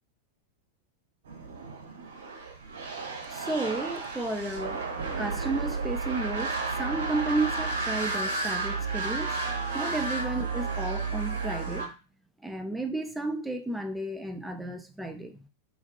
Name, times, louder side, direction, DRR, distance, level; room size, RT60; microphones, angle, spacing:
sound 1, 1.3-11.9, right 3 dB, 60° right, 0.6 m, -32 dB
voice 1, 3.3-4.9 5.2-9.4 9.7-11.9 12.4-15.4, right 2 dB, 5° right, 0.3 m, -33 dB
2.3 x 2.2 x 2.5 m
figure-of-eight pair, 90°, 0 cm